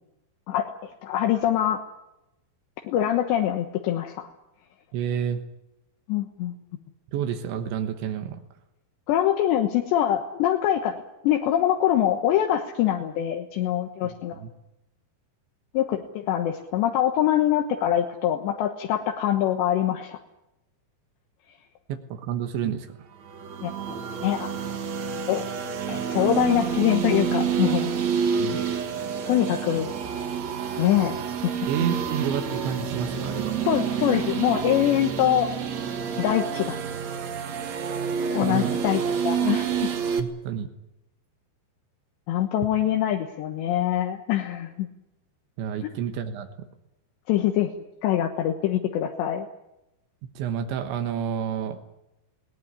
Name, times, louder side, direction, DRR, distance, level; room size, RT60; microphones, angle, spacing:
voice 1, 1.0-1.8 2.9-4.3 6.1-6.6 9.1-14.4 15.7-20.2 23.6-24.0 24.2-24.5 25.3-25.4 25.9-27.9 29.3-29.9 30.8-31.2 31.4-31.7 33.7-35.5 36.2-36.8 38.4-39.7 42.3-44.9 45.8-46.0 47.3-47.7 48.0-49.5, left 11 dB, 75° left, 4 dB, 3.4 m, -24 dB
voice 2, 4.9-5.4 7.1-8.4 14.3-14.5 21.9-23.1 28.4-28.7 31.7-33.6 38.4-38.8 40.2-40.7 45.6-46.5 50.4-51.8, right 8 dB, 85° right, 6 dB, 3.6 m, -29 dB
sound 1, 23.3-40.2, right 7 dB, 55° right, 2.1 m, -28 dB
21.0 x 18.5 x 9.8 m, 0.90 s
omnidirectional pair, 5.2 m